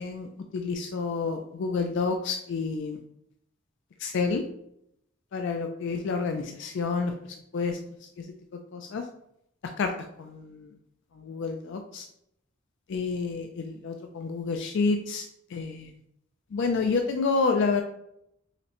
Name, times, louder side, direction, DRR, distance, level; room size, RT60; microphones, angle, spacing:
voice 1, 0.0-3.0 4.0-4.4 5.3-7.1 7.5-8.3 8.7-9.0 9.8-9.9 10.2-10.7 11.2-12.1 12.9-15.3 15.5-15.9 16.5-17.8, left 4 dB, 60° left, 4 dB, 0.4 m, -29 dB
5.6 x 2.1 x 2.9 m, 0.75 s
head